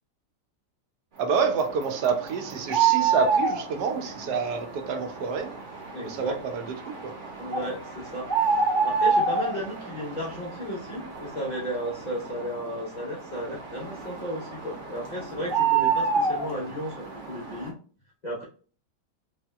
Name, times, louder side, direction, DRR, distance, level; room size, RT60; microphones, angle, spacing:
voice 1, 1.2-5.5 6.0-6.7 7.0-7.1, right 5 dB, 75° right, 6 dB, 1.1 m, -27 dB
sound 1, 1.4-17.7, right 5 dB, 60° right, 0.5 m, -29 dB
voice 2, 5.9-6.4 7.4-16.9 17.3-17.7 18.2-18.4, equal, 55° left, -4 dB, 0.4 m, -34 dB
3.4 x 2.6 x 2.3 m, 0.41 s
omnidirectional pair, 1.8 m